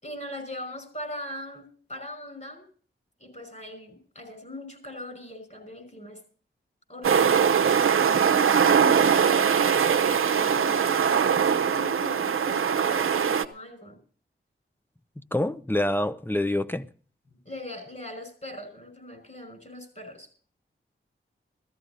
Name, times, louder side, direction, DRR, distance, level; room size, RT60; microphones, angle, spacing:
voice 1, 0.0-2.6 3.2-6.2 6.9-9.5 9.9-14.0 17.3-20.3, left 1 dB, 35° left, 5.5 m, -41 dB
sound 1, 7.0-13.5, right 7 dB, 80° right, 0.8 m, -21 dB
voice 2, 15.2-16.9, left 1 dB, 10° left, 0.6 m, -26 dB
15.0 x 14.0 x 4.0 m
cardioid pair, 55°, 21 cm